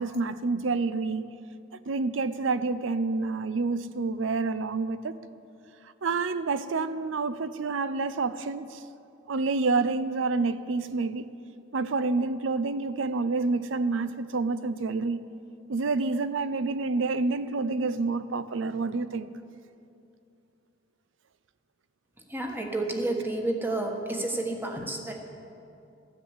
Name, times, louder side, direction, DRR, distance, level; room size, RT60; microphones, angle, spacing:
voice 1, 0.0-1.3 1.9-5.2 6.0-8.8 9.3-11.3 11.7-15.2 15.7-19.3, right 3 dB, 75° right, 0.6 m, -28 dB
voice 2, 22.3-25.2, right 2 dB, 10° right, 1.4 m, -30 dB
14.0 x 10.0 x 8.0 m
head